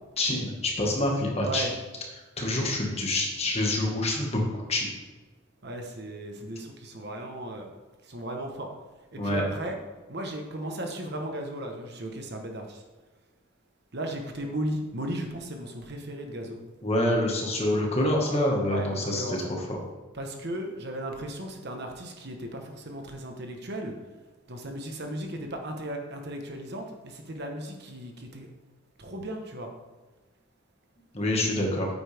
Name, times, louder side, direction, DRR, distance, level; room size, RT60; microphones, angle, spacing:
voice 1, 0.2-1.7 2.4-4.9 9.2-9.4 16.8-19.7 31.1-31.9, left 1 dB, 30° left, -1 dB, 1.8 m, -26 dB
voice 2, 5.6-7.7 8.1-8.7 9.1-9.8 10.1-12.8 13.9-16.6 18.7-19.4 20.2-23.9 24.5-28.5 29.0-29.7, right 1 dB, 55° right, 3 dB, 1.2 m, -36 dB
9.2 x 8.5 x 3.5 m, 1.2 s
head